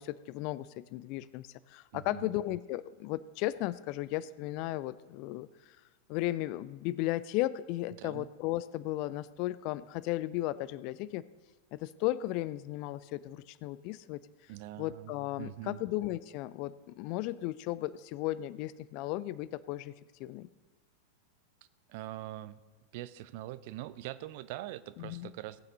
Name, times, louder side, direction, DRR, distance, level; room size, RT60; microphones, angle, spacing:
voice 1, 0.0-5.8 6.1-11.2 11.7-14.2 14.8-19.9 20.2-20.5 25.0-25.3, left 16 dB, 45° left, 18 dB, 0.4 m, -35 dB
voice 2, 1.9-2.4 8.0-8.3 14.5-15.9 21.9-22.6 22.9-25.6, right 15 dB, 50° right, 15 dB, 0.5 m, -43 dB
18.0 x 9.0 x 2.9 m, 1.2 s
figure-of-eight pair, 90°, 0 cm